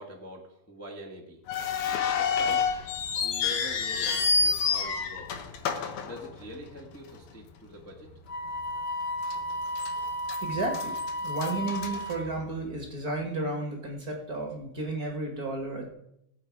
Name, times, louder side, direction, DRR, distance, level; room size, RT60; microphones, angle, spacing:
voice 1, 0.0-1.4 2.2-2.7 3.2-5.4 6.0-8.1, equal, 10° left, -1 dB, 0.9 m, -44 dB
sound 1, 1.5-6.8 7.1-7.2 7.9-8.1 8.6-8.7 9.3-9.9 10.2-12.7, left 5 dB, 85° left, 2.6 m, -29 dB
Wind instrument woodwind instrument, 8.3-12.4, left 1 dB, 40° left, 2.1 m, -34 dB
voice 2, 10.4-11.0 11.2-15.9, right 2 dB, 40° right, 2 dB, 1.6 m, -33 dB
17.5 x 8.2 x 4.7 m, 0.81 s
omnidirectional pair, 3.3 m